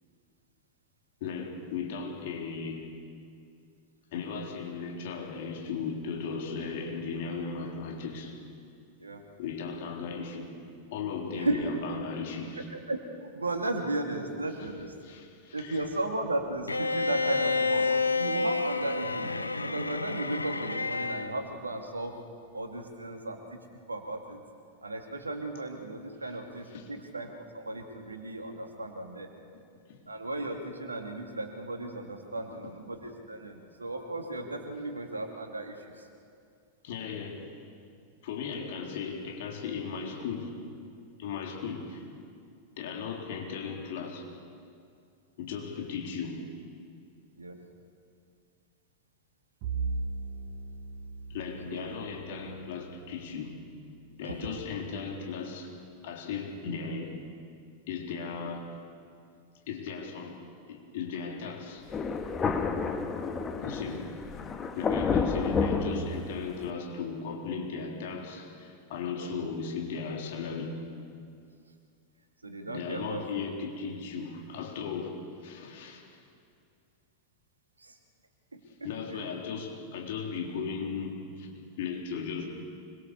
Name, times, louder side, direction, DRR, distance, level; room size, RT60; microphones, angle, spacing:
voice 1, 1.2-2.9 4.1-8.4 9.4-10.5 10.9-12.7 15.0-15.8 26.7-26.9 29.9-30.0 36.8-37.5 38.2-40.6 41.2-42.1 42.8-44.3 45.4-46.4 51.3-53.6 54.2-55.7 56.0-57.2 57.9-58.8 59.7-60.4 60.7-61.9 63.6-64.1 64.8-70.8 72.7-76.2 78.8-82.5, left 5 dB, 55° left, 1 dB, 3.9 m, -36 dB
voice 2, 12.7-14.9 15.5-19.3 19.6-22.2 22.5-23.6 23.9-24.4 24.8-29.3 30.1-36.1 47.4-47.6 51.7-51.9 54.2-54.4 63.8-64.0 69.2-69.4 72.4-73.3 77.8-78.0 78.5-79.4, right 2 dB, 80° right, 3 dB, 2.7 m, -35 dB
Bowed string instrument, 16.7-21.3, left 3 dB, 80° left, 0.8 m, -29 dB
Bowed string instrument 2, 49.6-54.2, right 4 dB, 45° right, 1.9 m, -38 dB
Thunder, 61.9-66.7, left 5 dB, 20° left, 1.7 m, -30 dB
26.0 x 22.5 x 6.9 m, 2.4 s
figure-of-eight pair, 90°, 0 cm